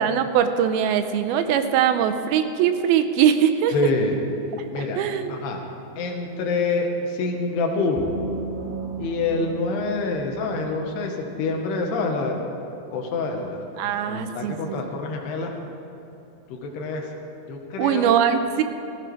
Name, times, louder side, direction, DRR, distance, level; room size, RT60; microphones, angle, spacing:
voice 1, 0.0-3.7 4.8-5.4 13.8-15.0 17.8-18.6, right 9 dB, 80° right, 9 dB, 2.4 m, -21 dB
voice 2, 3.7-4.1 4.7-5.0 5.3-5.6 6.0-8.1 9.0-12.4 12.9-13.6 14.0-15.5 16.5-17.1 17.5-18.2, left 3 dB, 90° left, 1 dB, 3.4 m, -26 dB
sound 1, 8.0-11.5, right 4 dB, 60° right, 0.7 m, -35 dB
15.5 x 15.5 x 4.7 m, 3.0 s
omnidirectional pair, 4.6 m